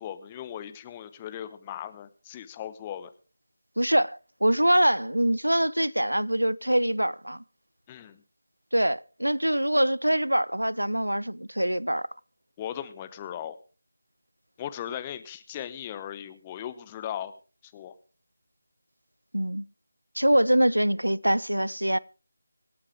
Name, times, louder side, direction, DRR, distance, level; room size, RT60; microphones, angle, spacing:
voice 1, 0.0-3.1 7.9-8.2 12.6-13.6 14.6-17.3 17.6-17.9, left 10 dB, 15° left, 0.9 m, -38 dB
voice 2, 3.8-7.4 8.7-12.1 19.3-19.6 20.2-22.0, right 1 dB, 85° right, 0.6 m, -24 dB
25.0 x 8.7 x 3.6 m
figure-of-eight pair, 160°, 0 cm